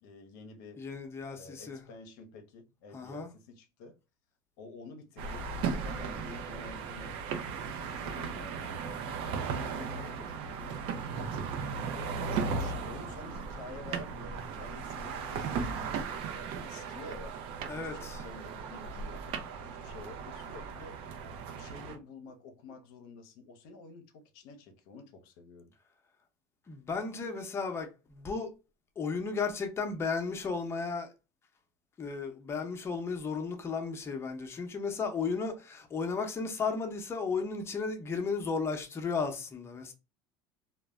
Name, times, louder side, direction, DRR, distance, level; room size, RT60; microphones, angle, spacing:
voice 1, 0.0-0.8 1.3-4.0 4.6-7.2 7.9-9.2 9.9-16.0 16.4-17.4 17.8-19.2 19.6-21.0 21.5-25.7, left 3 dB, 75° left, 0.5 m, -50 dB
voice 2, 0.8-1.8 2.9-3.3 9.8-10.1 17.7-18.2 26.7-28.6 29.0-31.1 32.0-39.9, left 5 dB, 25° left, 0.6 m, -34 dB
sound 1, 5.2-22.0, right 5 dB, 60° right, 0.5 m, -37 dB
2.1 x 2.0 x 3.4 m
supercardioid pair, 100°, 10 cm